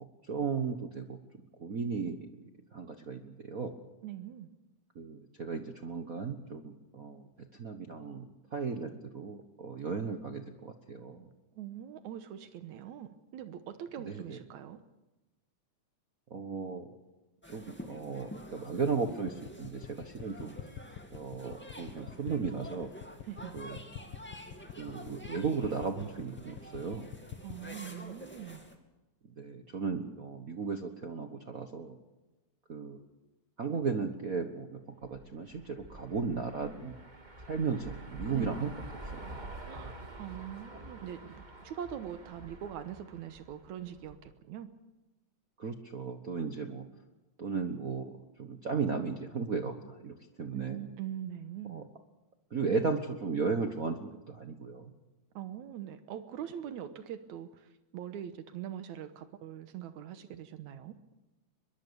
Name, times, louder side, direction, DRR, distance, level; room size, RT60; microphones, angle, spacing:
voice 1, 0.3-1.2 1.6-2.3 2.7-3.7 4.9-7.3 7.6-8.2 8.5-11.3 14.0-14.4 16.3-16.9 17.5-20.5 21.1-22.9 23.5-23.8 24.7-27.1 29.4-32.0 32.7-33.0 33.6-34.8 35.1-36.9 37.5-38.7 39.1-39.2 45.6-46.9 47.4-48.1 48.4-50.8 51.7-51.8 52.5-54.9, right 5 dB, 55° right, 6 dB, 0.9 m, -35 dB
voice 2, 4.0-4.5 11.5-14.8 23.2-23.6 27.4-28.6 38.3-38.5 39.6-44.7 50.5-51.9 55.4-61.0, right 10 dB, 80° right, 10 dB, 2.4 m, -42 dB
sound 1, 17.4-28.8, left 1 dB, 5° left, 1.9 m, -49 dB
sound 2, 19.1-27.6, left 10 dB, 65° left, 1.8 m, -45 dB
sound 3, 35.0-44.3, right 2 dB, 20° right, 1.5 m, -47 dB
23.0 x 22.0 x 6.9 m, 1.1 s
omnidirectional pair, 3.3 m